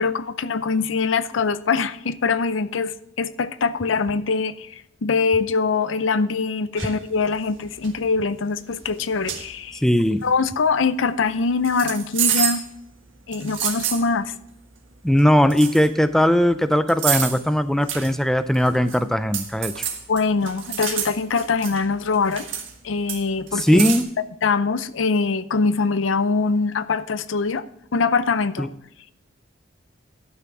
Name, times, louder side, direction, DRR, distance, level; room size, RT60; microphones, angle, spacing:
voice 1, 0.0-9.8 10.2-12.6 13.3-14.3 20.1-22.5 22.8-23.8 24.2-27.6 27.9-28.7, left 4 dB, 85° left, 0.6 m, -23 dB
dishwasher noises, 6.8-7.0 7.6-7.9 8.8-8.9 9.2-9.5 11.6-12.7 13.3-14.0 15.2-15.3 15.5-15.9 16.9-17.4 17.9-18.1 18.5-19.0 19.3-21.8 22.1-22.7 23.1-24.0, right 9 dB, 85° right, 1.5 m, -27 dB
voice 2, 9.8-10.3 15.0-19.9 23.6-24.1 28.6-28.7, equal, ahead, 0.4 m, -19 dB
12.0 x 5.9 x 4.7 m
head